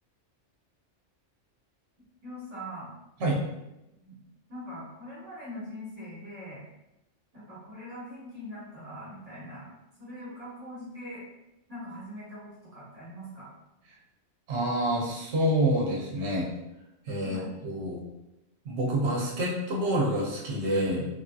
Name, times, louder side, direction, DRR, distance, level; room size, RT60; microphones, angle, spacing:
voice 1, 2.2-2.9 4.0-4.1 4.5-6.6 7.3-9.7 10.0-11.2 11.7-13.5 17.2-17.5, equal, 30° right, -9 dB, 1.3 m, -42 dB
voice 2, 14.5-16.5 17.1-18.0 18.6-21.1, right 1 dB, 65° right, -3 dB, 0.9 m, -27 dB
3.2 x 2.6 x 2.3 m, 0.91 s
omnidirectional pair, 1.3 m